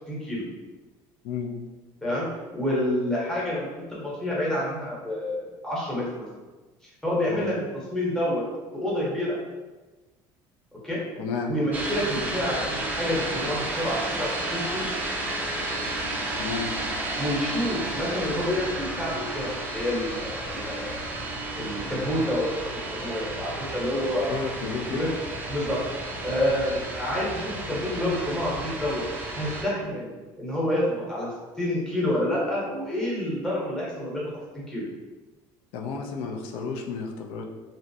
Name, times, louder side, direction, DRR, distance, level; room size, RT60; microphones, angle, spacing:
voice 1, 0.1-0.4 2.0-6.2 7.0-7.5 7.9-8.4 8.7-9.4 10.8-11.0 11.5-14.9 17.2-20.9 21.6-24.4 24.9-25.1 25.5-25.8 26.2-29.0 29.3-30.1 30.4-34.3 34.7-34.8, left 1 dB, 5° left, -7 dB, 0.8 m, -28 dB
voice 2, 1.2-1.6 7.3-7.5 11.2-11.5 16.4-16.7 24.3-25.1 35.7-37.4, left 5 dB, 70° left, 1 dB, 0.4 m, -32 dB
sound 1, 11.7-29.6, right 1 dB, 20° right, 0.4 m, -32 dB
2.5 x 2.0 x 2.6 m, 1.2 s
cardioid pair, 135°, 10 cm